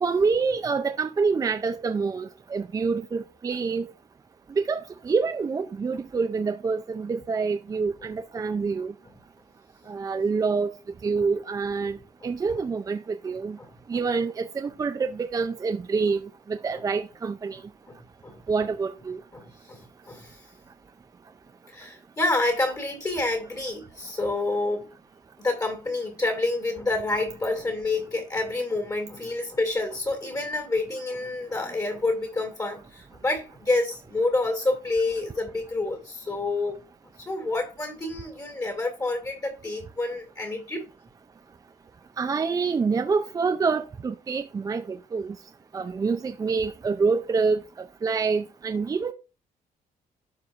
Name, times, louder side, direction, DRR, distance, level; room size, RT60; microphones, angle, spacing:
voice 1, 0.0-3.9 4.5-8.9 9.9-10.7 11.0-12.0 12.2-13.6 13.9-17.6 18.5-19.2 42.2-45.4 45.7-47.6 48.0-49.1, right 4 dB, 25° right, 0.5 m, -26 dB
voice 2, 9.8-10.2 12.2-12.3 13.3-14.0 17.9-18.7 19.3-20.4 21.7-24.9 25.4-36.8 37.2-40.9, left 2 dB, 25° left, 2.3 m, -28 dB
11.5 x 4.7 x 2.6 m
cardioid pair, 135°, 15 cm